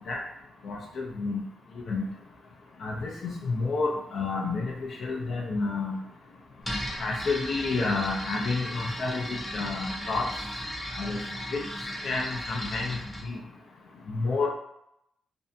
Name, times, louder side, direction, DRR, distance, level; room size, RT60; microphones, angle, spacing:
voice 1, 0.6-1.4 1.9-2.1 2.8-4.7 5.0-6.0 7.0-9.2 9.5-10.3 10.9-11.2 11.5-11.6 12.0-13.0 13.2-13.4 14.1-14.5, left 3 dB, 65° left, -1 dB, 0.5 m, -29 dB
sound 1, 6.6-13.3, equal, 10° left, 0.7 m, -36 dB
2.6 x 2.1 x 2.6 m, 0.80 s
cardioid pair, 85°, 0 cm